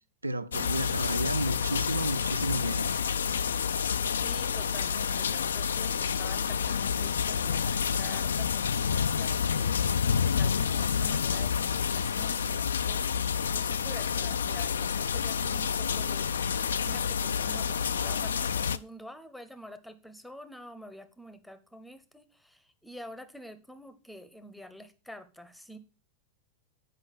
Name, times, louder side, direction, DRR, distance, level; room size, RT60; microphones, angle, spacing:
voice 1, 0.2-2.9, right 1 dB, 80° right, 0.5 m, -32 dB
sound 1, 0.5-18.8, left 7 dB, 70° left, 0.4 m, -29 dB
voice 2, 4.1-25.8, equal, ahead, 0.9 m, -48 dB
8.2 x 5.2 x 5.5 m
figure-of-eight pair, 90°, 0 cm